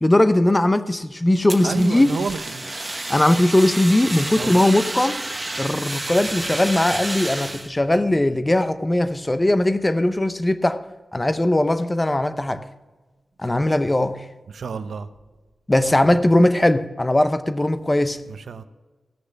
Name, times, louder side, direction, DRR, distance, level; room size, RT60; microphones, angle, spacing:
voice 1, 0.0-2.1 3.1-5.2 5.6-10.8 11.1-12.6 13.4-14.2 15.7-18.2, left 1 dB, 15° left, 0.7 m, -19 dB
Fire, 1.5-7.7, right 2 dB, 20° right, 1.3 m, -30 dB
voice 2, 1.6-2.5 4.3-4.5 14.5-15.1 18.3-18.6, right 5 dB, 80° right, 0.8 m, -29 dB
17.0 x 6.7 x 5.8 m
wide cardioid pair, 115°, 0 cm